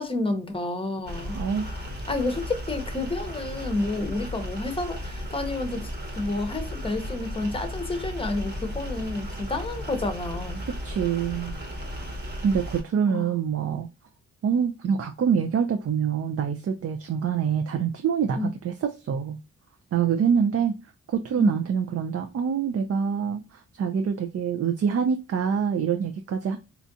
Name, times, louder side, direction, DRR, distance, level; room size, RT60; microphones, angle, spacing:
voice 1, 0.0-1.8 2.1-10.6 13.1-13.3 18.4-18.5 21.4-21.6, left 2 dB, 15° left, 0.8 m, -30 dB
sound 1, 1.1-12.8, equal, 35° right, 1.1 m, -35 dB
voice 2, 1.3-1.7 10.7-11.6 12.4-13.9 14.4-19.4 19.9-20.7 21.1-26.6, right 7 dB, 50° right, 0.5 m, -25 dB
4.4 x 2.4 x 2.6 m
cardioid pair, 75°, 31 cm